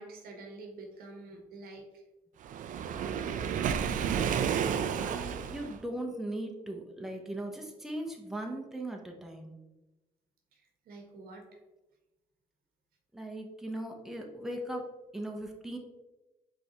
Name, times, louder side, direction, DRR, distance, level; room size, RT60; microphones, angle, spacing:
voice 1, 0.0-2.0 2.9-3.5 10.5-11.6, right 2 dB, 80° right, 3 dB, 1.0 m, -48 dB
Waves surf, 2.4-5.8, right 7 dB, 60° right, 0.4 m, -31 dB
voice 2, 5.0-9.6 13.1-15.8, right 1 dB, ahead, 1 dB, 0.8 m, -39 dB
5.2 x 3.3 x 2.9 m, 1.1 s
cardioid pair, 80°, 15 cm